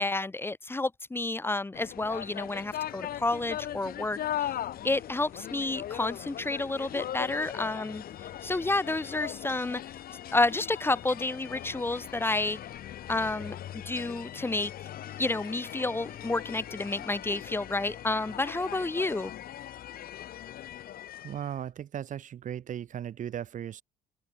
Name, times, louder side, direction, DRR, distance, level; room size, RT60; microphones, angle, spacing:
voice 1, 0.0-4.5 4.8-8.0 8.4-9.8 10.3-12.6 13.1-14.7 15.2-19.3, left 2 dB, 15° left, 1.2 m, -30 dB
sound 1, 1.7-21.6, left 11 dB, 60° left, 4.5 m, -40 dB
voice 2, 21.2-23.8, right 10 dB, 50° right, 1.3 m, -37 dB
open air
cardioid pair, 110°, 17 cm